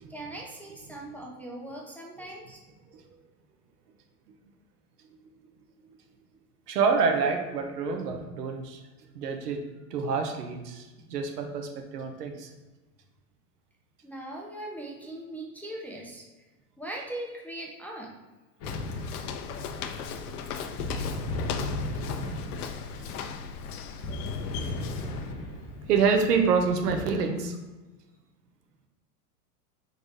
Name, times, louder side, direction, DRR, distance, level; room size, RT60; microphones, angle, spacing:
voice 1, 0.1-2.6 10.9-11.2 14.0-16.2 16.8-18.1, right 1 dB, 5° left, -2 dB, 0.5 m, -40 dB
voice 2, 6.7-8.8 9.1-9.6 9.9-12.5 25.9-27.6, right 5 dB, 75° right, 4 dB, 1.0 m, -27 dB
Walk footsteps, 18.6-25.3, left 7 dB, 65° left, 0.6 m, -38 dB
sound 1, 18.6-27.0, left 2 dB, 35° left, 0.9 m, -36 dB
4.0 x 3.6 x 3.5 m, 1.2 s
hypercardioid pair, 100°, 47 cm